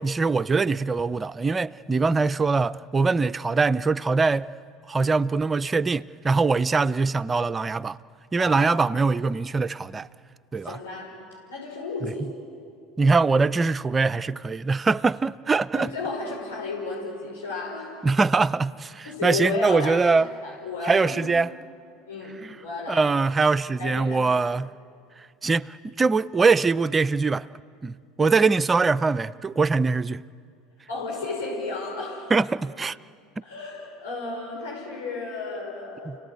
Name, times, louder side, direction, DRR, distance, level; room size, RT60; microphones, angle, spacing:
voice 1, 0.0-4.5 4.9-8.0 8.3-10.1 10.5-10.8 12.0-12.1 13.0-15.9 18.0-20.3 20.8-21.5 22.4-22.6 22.9-24.7 25.4-27.5 27.8-30.2 32.3-33.0 36.1-36.2, right 4 dB, 25° right, 0.5 m, -23 dB
voice 2, 8.4-9.0 10.6-11.2 11.5-12.3 15.7-18.0 19.0-21.2 22.1-23.0 23.8-24.2 30.9-32.3 33.4-36.1, left 3 dB, 80° left, 5.9 m, -33 dB
29.0 x 17.5 x 8.4 m
hypercardioid pair, 70°, 0 cm